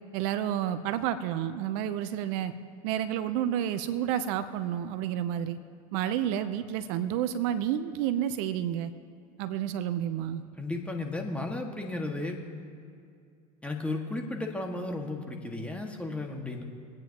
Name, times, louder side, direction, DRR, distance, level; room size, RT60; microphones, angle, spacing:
voice 1, 0.1-2.5 2.8-5.6 5.9-8.9 9.4-10.4 16.3-16.4, right 10 dB, 65° right, 11 dB, 0.7 m, -30 dB
voice 2, 10.6-12.4 13.6-16.6, left 2 dB, 5° left, 2 dB, 1.8 m, -34 dB
26.0 x 9.0 x 2.9 m, 2.3 s
hypercardioid pair, 90°, 19 cm